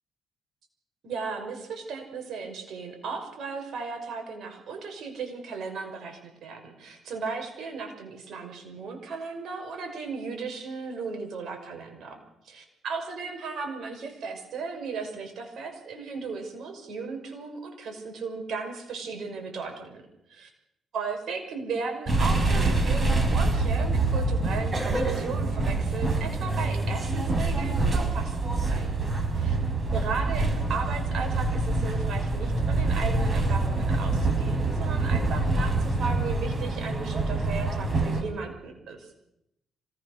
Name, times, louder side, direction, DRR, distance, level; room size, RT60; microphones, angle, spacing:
voice 1, 1.0-20.0 20.3-20.5 20.9-29.6 29.9-39.1, right 4 dB, 65° right, 4 dB, 6.0 m, -36 dB
sound 1, 22.1-38.2, right 2 dB, 30° right, 5.9 m, -26 dB
26.0 x 19.0 x 6.7 m, 0.83 s
cardioid pair, 90°, 0 cm